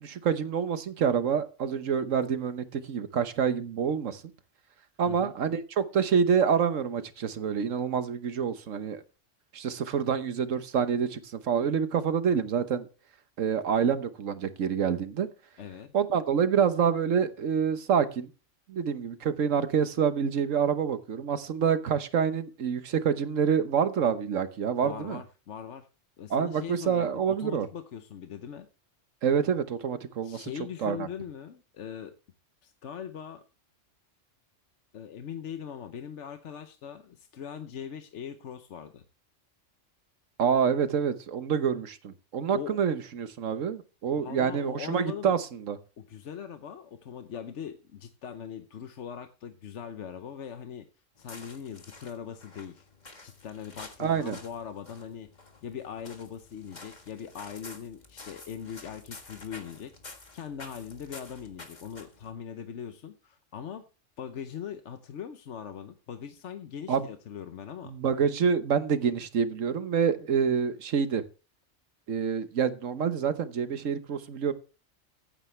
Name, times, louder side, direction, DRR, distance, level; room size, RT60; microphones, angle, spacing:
voice 1, 0.0-4.2 5.0-9.0 9.5-12.9 13.4-15.3 15.9-18.3 18.7-25.2 26.3-27.7 29.2-30.5 30.8-31.1 40.4-45.8 54.0-54.4 66.9-67.0 67.8-71.2 72.1-74.5, right 7 dB, 85° right, 1.4 m, -27 dB
voice 2, 15.6-16.0 24.8-25.9 26.2-28.7 30.2-32.1 32.6-33.4 34.9-39.0 42.5-42.8 44.2-45.4 46.0-50.9 51.2-52.9 53.2-63.8 64.2-67.9, left 8 dB, 70° left, 1.1 m, -41 dB
sound 1, 51.2-62.3, left 3 dB, 35° left, 1.7 m, -49 dB
15.0 x 8.8 x 3.3 m
omnidirectional pair, 1.3 m